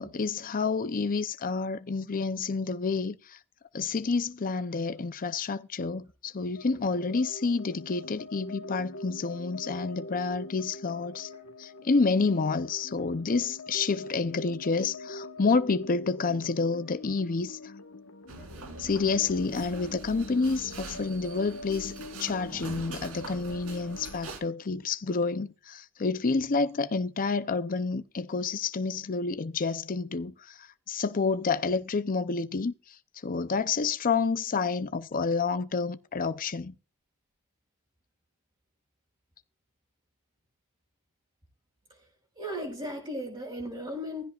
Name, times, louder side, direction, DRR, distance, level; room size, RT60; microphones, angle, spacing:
voice 1, 0.0-3.4 3.7-11.3 11.6-17.7 18.8-21.9 22.2-33.0 33.2-36.7, left 4 dB, 40° left, 0.6 m, -29 dB
sound 1, 6.5-24.2, left 2 dB, 60° left, 1.3 m, -44 dB
sound 2, 18.3-24.4, right 3 dB, 75° right, 3.4 m, -44 dB
voice 2, 42.4-44.2, equal, 25° right, 5.3 m, -36 dB
15.5 x 15.5 x 2.4 m
head